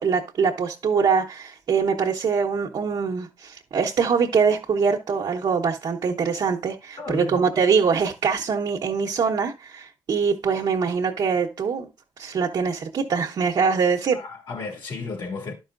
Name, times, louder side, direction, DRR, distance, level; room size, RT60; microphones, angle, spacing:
voice 1, 0.0-11.9 12.2-14.2, right 5 dB, 60° right, 1.0 m, -23 dB
voice 2, 7.0-7.4 14.1-15.5, left 4 dB, 70° left, 2.9 m, -33 dB
11.5 x 5.4 x 2.6 m
supercardioid pair, 55°, 9 cm